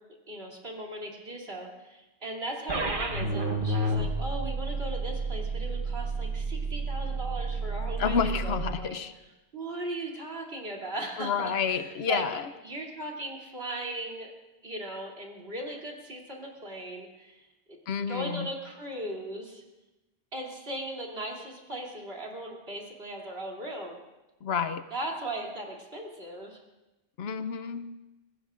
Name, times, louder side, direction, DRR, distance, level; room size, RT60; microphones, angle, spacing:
voice 1, 0.3-8.9 9.5-12.2 12.6-14.3 14.6-17.4 18.1-19.6 20.3-24.0 24.9-26.6, right 1 dB, 75° right, -2 dB, 3.3 m, -38 dB
sound 1, 2.7-8.7, right 2 dB, 55° right, 1.4 m, -31 dB
voice 2, 8.0-9.1 11.2-12.5 17.9-18.5 24.4-24.8 27.2-27.9, left 6 dB, 85° left, 11 dB, 1.0 m, -29 dB
25.5 x 20.5 x 2.5 m, 1.0 s
omnidirectional pair, 1.0 m